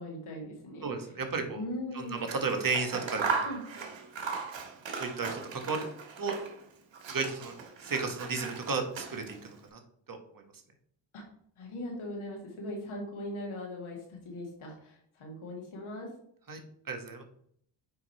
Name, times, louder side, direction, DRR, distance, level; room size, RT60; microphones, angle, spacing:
voice 1, 0.0-1.1 1.5-2.2 3.4-3.6 11.1-11.2 11.6-16.1, left 1 dB, 80° left, 0 dB, 2.2 m, -40 dB
voice 2, 0.8-1.6 1.9-3.4 5.0-5.8 6.2-6.4 7.1-7.5 7.8-9.8 10.1-10.4 16.5-16.6 16.9-17.2, right 4 dB, 45° right, 4 dB, 1.6 m, -33 dB
Scissors, 2.1-6.6 6.9-9.5, right 5 dB, 65° right, 1.3 m, -37 dB
9.0 x 3.0 x 4.2 m, 0.65 s
supercardioid pair, 50°, 48 cm